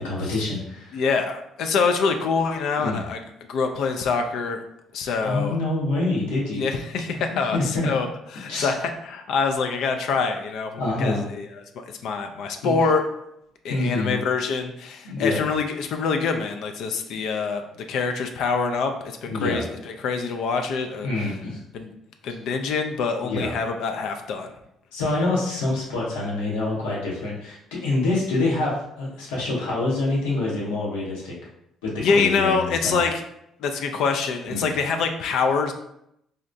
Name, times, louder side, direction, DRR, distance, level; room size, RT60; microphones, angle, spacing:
voice 1, 0.0-1.0 2.8-3.0 5.2-6.7 7.5-7.9 8.5-8.7 10.8-11.3 12.6-12.8 13.7-14.2 15.0-15.5 19.3-19.7 21.0-21.6 23.2-23.5 24.9-31.3 31.8-33.0 34.5-34.7, left 2 dB, 90° left, -4 dB, 0.8 m, -26 dB
voice 2, 0.9-3.2 3.5-4.6 4.9-5.6 6.6-8.1 8.3-11.5 11.8-13.0 13.6-21.3 21.7-21.9 22.2-24.5 32.0-33.2 33.6-35.7, left 5 dB, 70° left, 5 dB, 0.3 m, -25 dB
3.7 x 2.1 x 2.6 m, 0.78 s
supercardioid pair, 65°, 0 cm